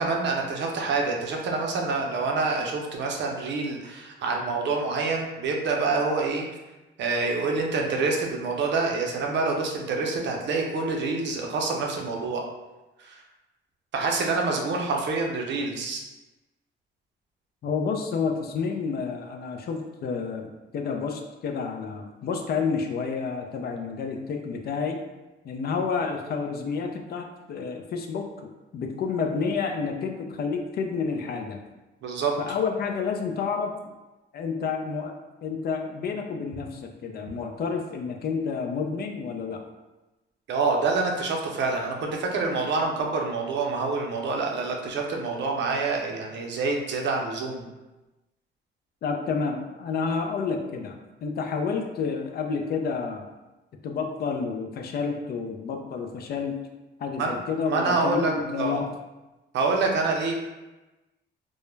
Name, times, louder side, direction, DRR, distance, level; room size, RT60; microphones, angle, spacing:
voice 1, 0.0-6.5 7.0-12.4 13.0-13.2 13.9-16.0 32.0-32.3 40.5-47.7 57.2-57.3 57.7-58.8 59.5-60.3, right 3 dB, 65° right, 1 dB, 0.5 m, -27 dB
voice 2, 17.6-25.0 25.4-31.6 32.4-33.7 34.3-35.1 35.4-39.6 49.0-53.3 53.8-56.6 57.0-58.9, left 5 dB, 50° left, 4 dB, 0.4 m, -30 dB
2.2 x 2.0 x 3.1 m, 1.1 s
cardioid pair, 90°, 20 cm